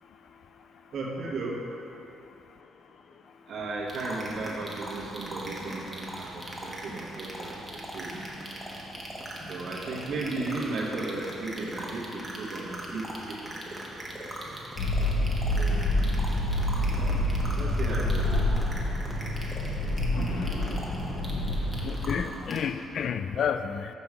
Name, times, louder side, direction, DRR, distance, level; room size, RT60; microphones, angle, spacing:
voice 1, 0.9-1.6 3.5-8.4 9.5-13.6 15.1-15.9 16.9-17.1 17.5-18.5, right 3 dB, 60° right, -2 dB, 1.3 m, -35 dB
sound 1, 3.9-22.6, right 1 dB, 15° right, 1.2 m, -40 dB
sound 2, 14.8-22.2, left 1 dB, 80° left, 0.9 m, -27 dB
voice 2, 21.8-23.9, left 7 dB, 60° left, 10 dB, 0.3 m, -30 dB
6.0 x 5.4 x 4.8 m, 2.7 s
cardioid pair, 90°, 0 cm